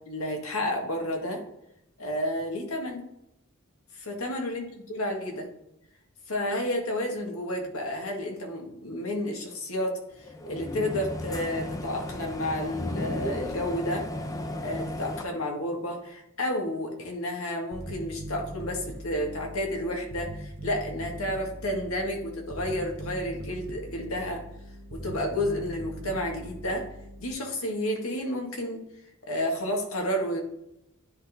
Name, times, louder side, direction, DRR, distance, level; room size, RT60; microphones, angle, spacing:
voice 1, 0.1-1.4 2.0-3.1 4.0-5.5 6.3-10.0 10.5-14.1 14.6-24.4 24.9-26.9 27.2-28.8 29.3-30.4, left 1 dB, 85° left, 1 dB, 1.8 m, -31 dB
sound 1, 10.2-15.2, left 1 dB, 15° left, 0.5 m, -34 dB
Bass guitar, 17.7-27.3, equal, 45° right, 1.1 m, -41 dB
9.9 x 4.2 x 3.7 m, 0.79 s
head